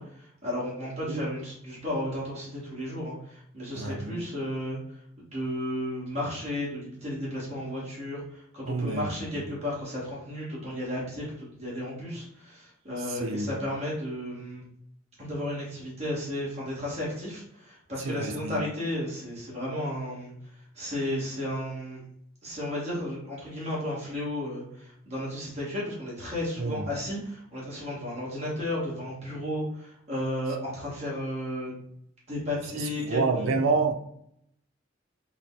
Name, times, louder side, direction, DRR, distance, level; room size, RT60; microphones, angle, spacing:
voice 1, 0.0-4.8 5.2-14.6 15.2-22.0 22.4-31.8 32.3-33.6, left 1 dB, 35° right, 1.3 m, -33 dB
voice 2, 3.8-4.2 8.7-9.1 13.2-13.5 18.1-18.6 26.6-26.8 33.0-33.9, right 4 dB, 80° right, 0.5 m, -28 dB
3.8 x 2.1 x 3.8 m
head